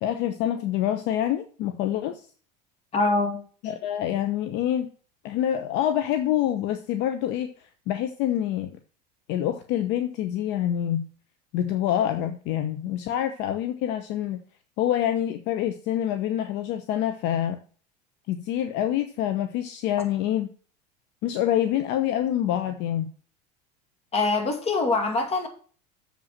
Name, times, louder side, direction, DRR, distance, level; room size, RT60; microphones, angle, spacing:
voice 1, 0.0-2.2 3.6-4.9 5.2-7.5 7.9-8.7 9.3-11.0 11.5-14.4 14.8-17.6 18.3-20.5 21.2-23.1, left 11 dB, 60° left, 0.9 m, -26 dB
voice 2, 2.9-3.4 24.1-25.5, left 3 dB, 30° left, 2.3 m, -24 dB
7.3 x 5.2 x 7.3 m
supercardioid pair, 100°, 21 cm